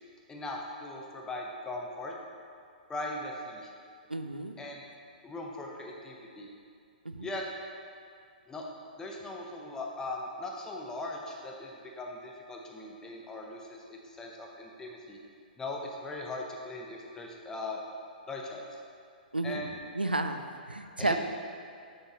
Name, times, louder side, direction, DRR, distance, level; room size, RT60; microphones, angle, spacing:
voice 1, 0.3-2.1 2.9-3.7 4.6-4.8 5.2-6.5 7.2-7.4 8.5-8.6 9.0-15.2 15.6-17.8 18.3-18.7 19.4-19.7 21.0-21.2, left 2 dB, 10° left, 0 dB, 0.7 m, -39 dB
voice 2, 4.1-4.5 7.0-7.3 19.3-19.6 19.9-21.2, right 2 dB, 90° right, 7 dB, 0.4 m, -32 dB
7.1 x 6.4 x 3.0 m, 2.4 s
figure-of-eight pair, 115°, 5 cm